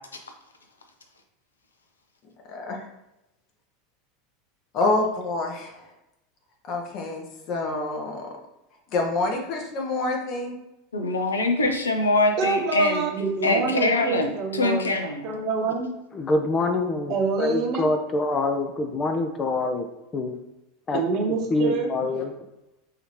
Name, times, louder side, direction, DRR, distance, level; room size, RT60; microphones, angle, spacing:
voice 1, 2.5-2.9 4.7-5.9 6.7-8.3 8.9-10.6 22.1-22.2, left 2 dB, 50° left, 1 dB, 1.0 m, -27 dB
voice 2, 10.9-13.1 13.4-15.3, left 2 dB, 85° left, 5 dB, 0.5 m, -23 dB
voice 3, 12.4-14.8 15.2-15.9 17.1-17.9 20.9-22.1, right 4 dB, 50° right, 2 dB, 0.9 m, -26 dB
voice 4, 16.1-19.9 20.1-20.4 20.9-21.0 21.5-22.3, left 2 dB, 30° left, 5 dB, 0.4 m, -25 dB
4.8 x 2.8 x 3.1 m, 0.92 s
figure-of-eight pair, 85°, 0 cm